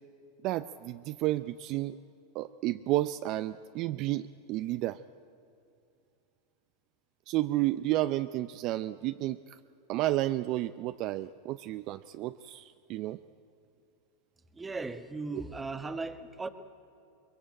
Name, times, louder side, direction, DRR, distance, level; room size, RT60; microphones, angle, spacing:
voice 1, 0.4-2.0 2.3-5.0 7.3-9.6 9.9-13.2, right 16 dB, 50° right, 12 dB, 0.5 m, -31 dB
voice 2, 14.5-16.5, right 3 dB, 15° right, 9 dB, 1.3 m, -37 dB
22.5 x 21.5 x 8.9 m, 2.6 s
supercardioid pair, 120°, 0 cm